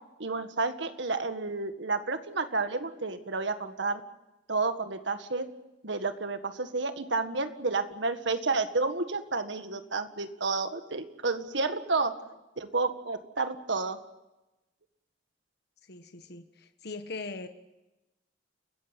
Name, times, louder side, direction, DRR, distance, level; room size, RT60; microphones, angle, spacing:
voice 1, 0.2-4.0 4.5-5.5 5.8-12.1 12.6-14.0, right 3 dB, 75° right, 9 dB, 1.8 m, -30 dB
voice 2, 15.9-17.5, left 3 dB, 60° left, 7 dB, 1.4 m, -41 dB
29.5 x 15.0 x 8.3 m, 1.0 s
head